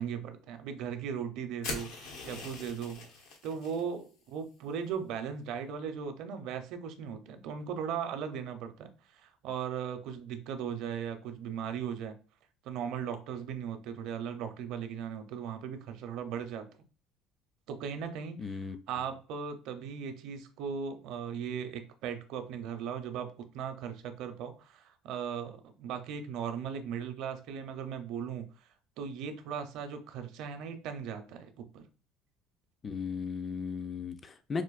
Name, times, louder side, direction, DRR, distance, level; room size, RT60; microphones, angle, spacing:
voice 1, 0.0-3.0 3.4-12.1 12.6-16.8 17.7-28.5 29.0-31.8, right 7 dB, 65° right, 0.6 m, -38 dB
sound 1, 1.6-3.8, left 3 dB, 85° left, 1.1 m, -42 dB
voice 2, 18.4-18.8 32.8-34.6, left 5 dB, 25° left, 0.3 m, -36 dB
4.3 x 2.5 x 2.4 m
cardioid pair, 130°, 0 cm